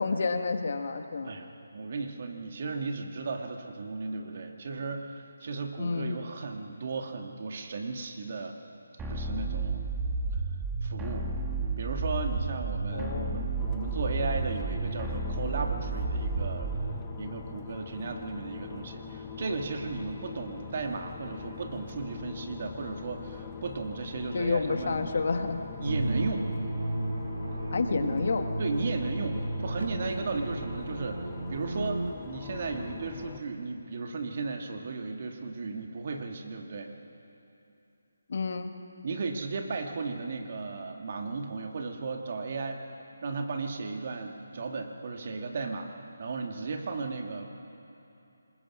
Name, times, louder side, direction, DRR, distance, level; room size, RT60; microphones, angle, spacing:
voice 1, 0.0-1.3 5.8-6.2 12.9-13.4 24.3-25.6 27.7-28.4 38.3-38.7, left 4 dB, 55° left, 7 dB, 1.6 m, -29 dB
voice 2, 1.2-8.6 9.1-9.9 10.8-11.3 11.8-16.7 17.2-25.3 25.8-26.5 27.9-28.1 28.6-36.9 39.0-42.9 43.2-47.5, right 4 dB, 45° right, 4 dB, 2.1 m, -35 dB
sound 1, 9.0-17.0, right 3 dB, 10° right, 1.7 m, -32 dB
sound 2, 13.6-33.4, left 6 dB, 15° left, 1.1 m, -43 dB
sound 3, 25.8-32.1, right 2 dB, 80° right, 0.9 m, -33 dB
26.0 x 21.0 x 6.1 m, 2.8 s
figure-of-eight pair, 160°, 0 cm